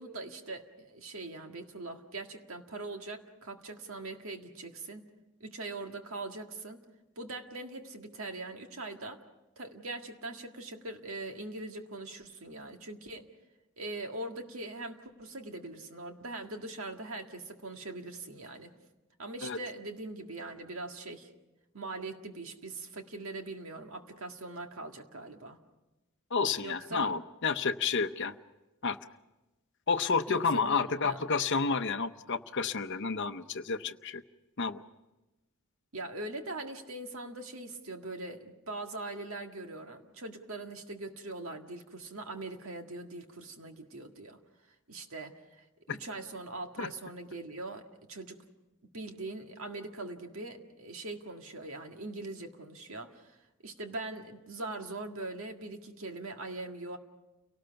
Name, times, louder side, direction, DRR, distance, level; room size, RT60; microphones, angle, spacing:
voice 1, 0.0-5.1 5.4-6.8 7.2-9.2 9.6-13.3 13.8-18.7 19.2-21.3 21.7-25.6 26.6-27.1 30.3-31.2 35.9-44.4 44.9-47.8 48.1-48.4 48.9-53.4 53.6-57.0, right 2 dB, 70° right, 4 dB, 1.9 m, -41 dB
voice 2, 26.3-28.3 28.8-29.0 29.9-34.2 34.6-34.8 45.9-46.0 46.8-46.9, left 5 dB, 55° left, 8 dB, 0.8 m, -30 dB
30.0 x 18.5 x 5.8 m, 1.0 s
head